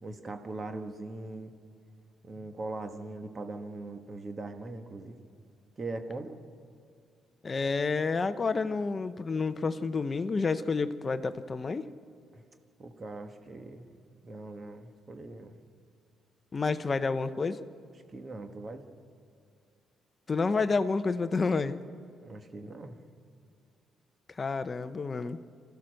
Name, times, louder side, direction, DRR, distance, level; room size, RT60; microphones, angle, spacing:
voice 1, 0.0-1.5 2.2-5.2 5.8-6.4 12.3-12.4 12.8-13.9 14.2-15.6 18.1-18.8 22.2-23.0, right 2 dB, 25° right, 6 dB, 1.3 m, -40 dB
voice 2, 7.4-11.9 16.5-17.6 20.3-21.8 24.4-25.4, left 4 dB, 25° left, 12 dB, 0.7 m, -29 dB
26.5 x 15.0 x 6.5 m, 2.4 s
cardioid pair, 170°, 0 cm